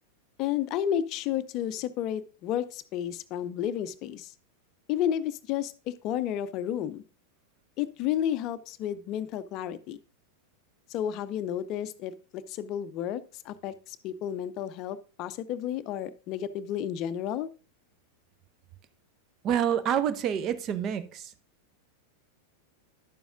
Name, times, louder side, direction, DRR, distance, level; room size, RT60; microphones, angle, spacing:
voice 1, 0.4-4.3 4.9-7.0 7.8-10.0 10.9-17.5, left 10 dB, 40° left, 0.5 m, -32 dB
voice 2, 19.4-21.3, right 9 dB, 35° right, 0.6 m, -27 dB
10.5 x 6.9 x 2.5 m
figure-of-eight pair, 90°, 0 cm